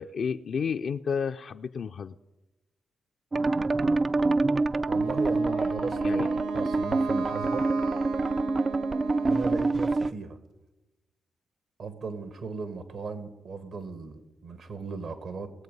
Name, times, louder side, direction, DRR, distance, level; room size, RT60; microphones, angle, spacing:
voice 1, 0.0-2.1 6.0-6.3, left 6 dB, 65° left, 6 dB, 0.4 m, -31 dB
sound 1, 3.3-10.1, right 3 dB, 40° right, 0.3 m, -26 dB
Wind instrument woodwind instrument, 4.8-9.7, right 5 dB, 85° right, 0.8 m, -37 dB
voice 2, 4.9-7.7 9.2-10.4 11.8-15.5, right 4 dB, 70° right, 11 dB, 1.4 m, -37 dB
20.5 x 7.6 x 5.3 m, 1.1 s
hypercardioid pair, 45°, 0 cm